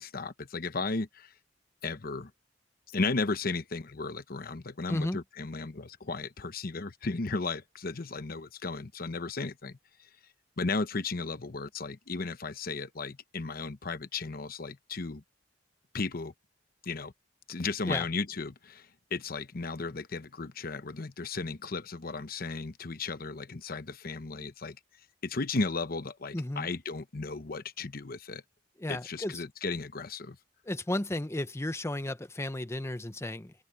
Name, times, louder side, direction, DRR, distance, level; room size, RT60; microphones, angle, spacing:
voice 1, 0.0-1.3 1.8-2.3 2.9-10.1 10.6-15.2 15.9-16.3 16.8-17.1 17.5-24.8 25.2-28.4 28.9-30.4, left 3 dB, 55° left, 0.9 m, -35 dB
voice 2, 4.9-5.2 17.9-18.1 26.3-26.7 28.8-29.4 30.6-33.5, left 1 dB, 15° left, 0.8 m, -33 dB
head